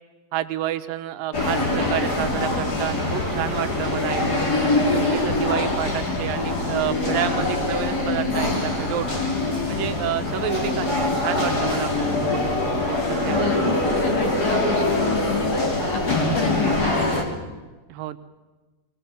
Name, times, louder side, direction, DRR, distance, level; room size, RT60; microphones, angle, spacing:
voice 1, 0.3-4.4 4.9-9.1 9.7-12.6 12.9-13.5 17.9-18.2, right 11 dB, 75° right, 10 dB, 2.6 m, -29 dB
sound 1, 1.3-17.2, left 2 dB, 25° left, 3.2 m, -23 dB
voice 2, 13.1-15.6 15.9-16.9, left 7 dB, 65° left, 6 dB, 1.8 m, -30 dB
24.0 x 20.0 x 7.0 m, 1.2 s
omnidirectional pair, 4.1 m